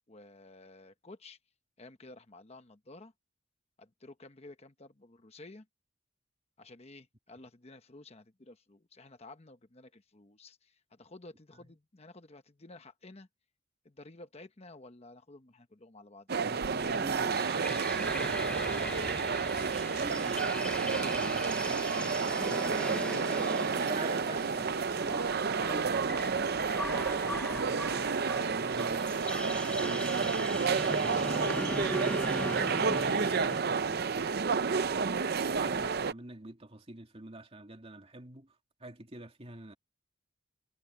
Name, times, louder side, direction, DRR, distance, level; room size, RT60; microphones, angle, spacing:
voice 1, 0.1-1.4 1.8-3.1 3.8-5.7 6.6-13.3 13.8-16.6 18.7-19.4, left 2 dB, 30° left, 1.0 m, -52 dB
sound 1, 16.3-36.1, right 5 dB, 55° right, 0.6 m, -30 dB
voice 2, 16.4-19.1 19.4-23.5 23.8-29.0 29.4-35.2 35.5-39.7, right 1 dB, 30° right, 2.6 m, -46 dB
lost jungle, 16.7-33.6, left 1 dB, 5° left, 0.6 m, -40 dB
head